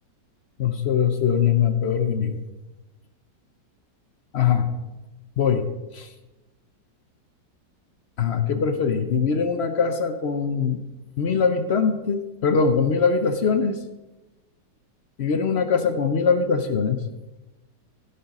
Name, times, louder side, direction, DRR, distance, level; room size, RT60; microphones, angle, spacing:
voice 1, 0.6-2.4 4.3-4.7 5.4-5.6 5.9-6.1 8.2-10.8 11.2-13.8 15.2-17.0, left 6 dB, 60° left, 8 dB, 0.7 m, -22 dB
15.5 x 5.5 x 5.3 m, 1.1 s
omnidirectional pair, 1.9 m